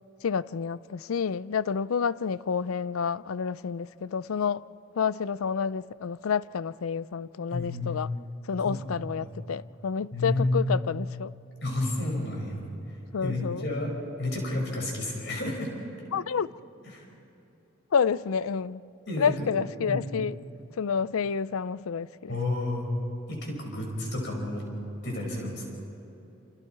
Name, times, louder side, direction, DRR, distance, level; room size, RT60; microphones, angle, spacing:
voice 1, 0.2-4.6 5.0-8.1 8.4-11.3 13.1-13.7 16.1-16.5 17.9-18.8 19.2-20.4 20.8-22.4, left 6 dB, 90° left, 0.5 m, -29 dB
voice 2, 7.5-8.0 8.6-8.8 9.2-9.3 10.1-10.7 11.6-12.6 13.2-13.9 14.2-15.7 16.9-17.0 19.1-19.3 19.9-20.0 22.3-22.9 23.3-24.6 25.0-25.7, left 2 dB, 55° left, 5.9 m, -30 dB
28.0 x 27.5 x 4.7 m
head